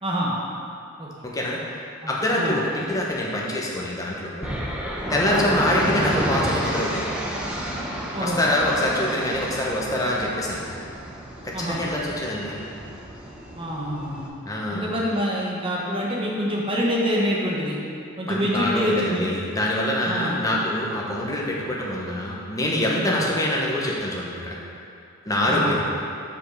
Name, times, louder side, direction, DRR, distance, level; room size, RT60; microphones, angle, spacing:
voice 1, 0.0-0.3 1.0-1.1 2.0-2.1 2.4-2.6 5.3-5.4 8.1-8.4 11.5-11.8 13.6-14.3 14.7-17.8 18.2-19.4 20.0-20.4 23.2-23.3 25.5-25.8, equal, 25° right, -4 dB, 1.2 m, -26 dB
voice 2, 1.2-1.6 2.1-4.5 5.1-7.0 8.2-10.6 11.4-12.6 14.5-14.9 18.3-24.6 25.3-25.8, left 1 dB, 15° left, -4 dB, 1.0 m, -25 dB
sound 1, 4.4-14.3, right 1 dB, 5° right, 0.7 m, -30 dB
5.5 x 5.3 x 6.4 m, 2.4 s
head